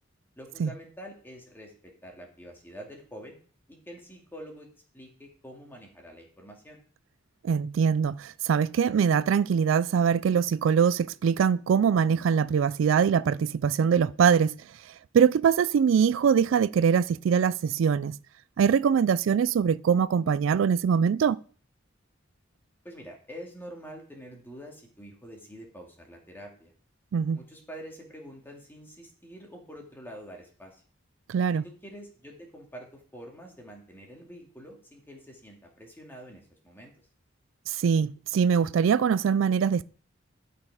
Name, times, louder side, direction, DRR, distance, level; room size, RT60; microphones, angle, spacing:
voice 1, 0.4-3.4 3.7-4.7 4.9-6.8 22.8-26.7 27.3-30.8 31.6-36.9, equal, 10° left, 2.2 m, -46 dB
voice 2, 7.4-14.6 14.9-18.2 18.6-21.4 27.1-27.4 31.3-31.6 37.7-39.8, right 7 dB, 80° right, 0.3 m, -23 dB
12.0 x 5.3 x 4.8 m
head